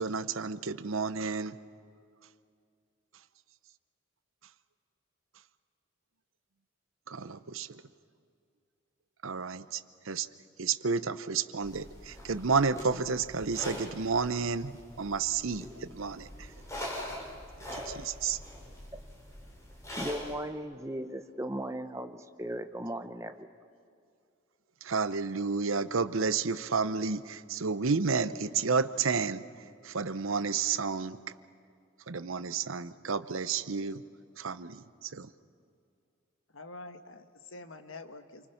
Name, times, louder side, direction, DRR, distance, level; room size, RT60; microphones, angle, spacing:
voice 1, 0.0-1.6 7.1-7.8 9.2-9.8 10.1-10.3 10.6-16.3 17.9-18.4 24.8-29.4 29.8-31.2 32.1-34.0 34.4-35.3, right 5 dB, 80° right, 13 dB, 0.8 m, -31 dB
sound 1, 11.6-20.3, left 1 dB, 15° left, 4.7 m, -43 dB
voice 2, 20.0-23.7, right 1 dB, 15° right, 8 dB, 0.9 m, -37 dB
voice 3, 36.5-38.5, left 2 dB, 80° left, 8 dB, 1.4 m, -46 dB
29.0 x 24.5 x 5.8 m, 2.4 s
head